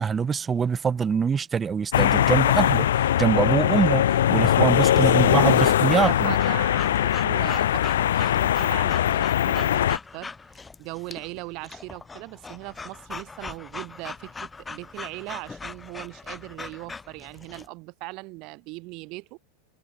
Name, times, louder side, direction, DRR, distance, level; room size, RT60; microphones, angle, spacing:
voice 1, 0.0-6.3, right 6 dB, 20° right, 1.0 m, -24 dB
sound 1, 1.9-10.0, left 11 dB, 60° left, 0.8 m, -21 dB
voice 2, 4.9-19.4, right 26 dB, 40° right, 6.8 m, -39 dB
Breathing / Dog, 5.5-17.7, left 4 dB, 10° left, 5.1 m, -40 dB
figure-of-eight pair, 90°, 0 cm